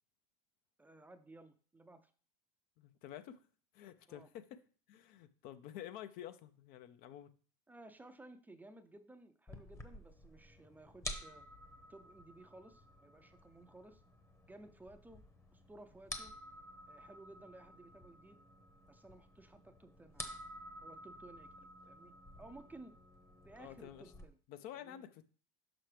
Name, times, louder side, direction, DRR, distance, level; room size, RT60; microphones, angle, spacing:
voice 1, 0.8-2.1 4.1-4.3 7.7-11.5 11.9-14.0 14.5-15.2 15.5-16.3 16.9-18.4 18.9-20.3 20.8-22.9 23.4-24.4 24.7-25.0, right 2 dB, 10° right, 0.5 m, -57 dB
voice 2, 2.8-3.4 3.7-4.6 4.9-7.3 23.6-24.1 24.5-25.3, left 11 dB, 55° left, 0.6 m, -50 dB
sound 1, 9.5-24.3, left 1 dB, 15° left, 0.9 m, -51 dB
5.9 x 5.8 x 3.3 m
supercardioid pair, 110°, 17 cm